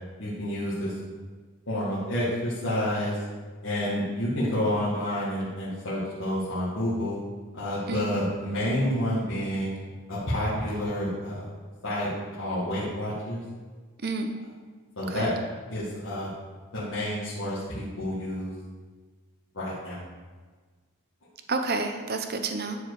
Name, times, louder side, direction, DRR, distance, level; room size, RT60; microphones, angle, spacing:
voice 1, 0.2-0.9 1.7-3.2 3.6-7.2 7.5-9.8 10.1-11.4 11.8-12.1 12.4-13.4 15.0-15.3 15.7-16.3 16.7-18.5 19.5-20.0, left 1 dB, 60° left, -10 dB, 1.9 m, -29 dB
voice 2, 14.0-14.3 15.1-15.3 21.5-22.8, right 3 dB, 45° right, 6 dB, 0.7 m, -29 dB
10.5 x 4.7 x 4.8 m, 1.4 s
head